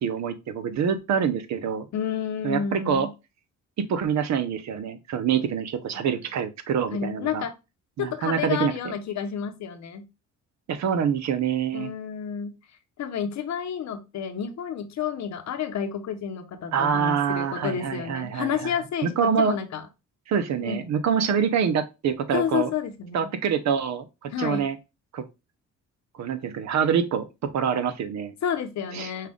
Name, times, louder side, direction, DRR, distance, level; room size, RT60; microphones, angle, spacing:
voice 1, 0.0-1.9 2.4-3.1 3.8-7.4 8.0-9.0 10.7-11.9 16.7-18.7 19.0-19.6 20.3-22.7 23.1-24.8 25.1-25.2 26.2-27.3 27.5-28.3 28.9-29.1, right 7 dB, 65° right, 0.8 m, -25 dB
voice 2, 1.9-3.1 6.0-6.1 6.9-7.5 8.0-10.1 11.7-12.5 13.0-19.8 20.6-20.8 21.3-21.4 22.3-23.3 24.3-24.7 28.4-29.3, left 8 dB, 65° left, 1.0 m, -30 dB
5.6 x 2.5 x 3.5 m
cardioid pair, 90°, 30 cm